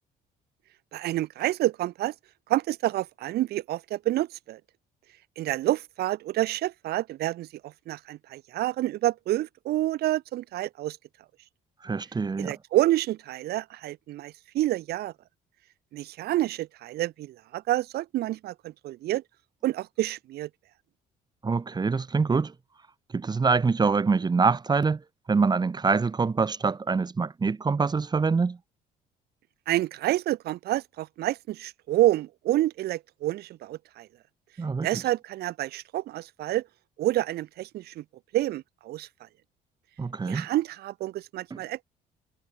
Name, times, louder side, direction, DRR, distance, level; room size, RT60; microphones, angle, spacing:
voice 1, 0.9-2.1 2.5-4.6 5.4-11.0 12.4-15.1 15.9-19.2 19.6-20.5 29.7-34.1 34.8-36.6 37.0-38.0 38.3-39.1 40.3-41.8, right 15 dB, 70° right, 1.1 m, -28 dB
voice 2, 11.8-12.6 21.4-22.5 23.1-25.0 25.3-28.6 34.6-35.0 40.0-40.5 41.5-41.6, right 4 dB, 25° right, 2.4 m, -25 dB
cardioid pair, 110°, 17 cm